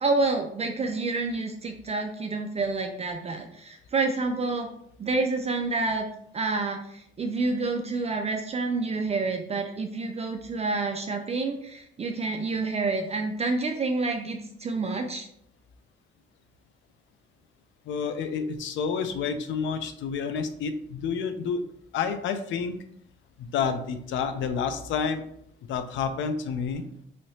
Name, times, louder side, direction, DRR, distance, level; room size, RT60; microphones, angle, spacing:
voice 1, 0.0-4.7 5.0-6.1 6.3-15.3, right 3 dB, 30° right, 4 dB, 0.4 m, -28 dB
voice 2, 17.9-21.6 21.9-22.7 23.4-25.2 25.7-26.8, left 6 dB, 70° left, 9 dB, 0.4 m, -29 dB
3.2 x 2.7 x 2.7 m, 0.70 s
cardioid pair, 90°, 20 cm